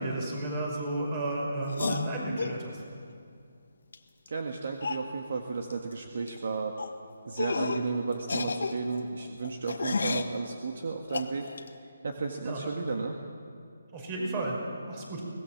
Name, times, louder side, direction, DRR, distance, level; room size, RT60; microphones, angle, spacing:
voice 1, 0.0-2.8 12.4-12.9 13.9-14.6 14.9-15.2, right 2 dB, 25° right, 0 dB, 5.3 m, -33 dB
sound 1, 1.7-2.6 3.9-4.0 4.3-4.4 4.8-5.1 5.7-5.9 6.2-6.4 6.8-6.9 7.4-7.9 8.2-10.3 11.1-11.7, left 4 dB, 70° left, 1.6 m, -32 dB
voice 2, 4.3-6.8 7.3-11.5 12.0-13.2, right 4 dB, 55° right, 3 dB, 1.7 m, -33 dB
23.5 x 19.0 x 7.3 m, 2.4 s
hypercardioid pair, 165°, 0 cm